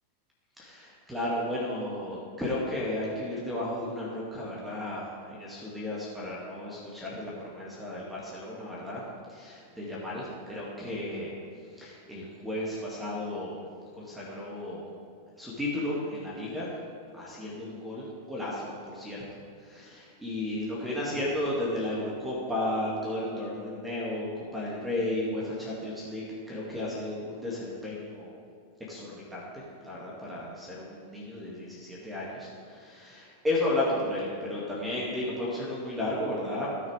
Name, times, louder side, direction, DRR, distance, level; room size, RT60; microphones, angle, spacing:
voice 1, 0.6-9.0 9.3-11.3 11.7-13.6 13.9-14.9 15.4-16.7 17.2-19.2 19.6-28.3 28.9-36.7, left 1 dB, 5° right, -6 dB, 2.3 m, -33 dB
17.5 x 6.7 x 3.5 m, 2.4 s
figure-of-eight pair, 90°, 0 cm